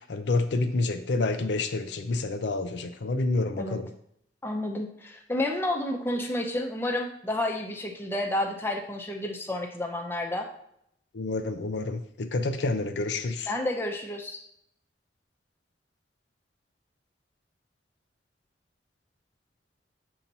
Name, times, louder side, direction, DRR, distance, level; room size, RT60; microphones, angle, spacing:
voice 1, 0.1-3.9 11.1-13.5, left 3 dB, 70° left, 7 dB, 0.5 m, -28 dB
voice 2, 4.4-10.5 13.5-14.4, left 1 dB, 15° left, 1 dB, 0.7 m, -30 dB
7.1 x 2.9 x 5.4 m, 0.71 s
head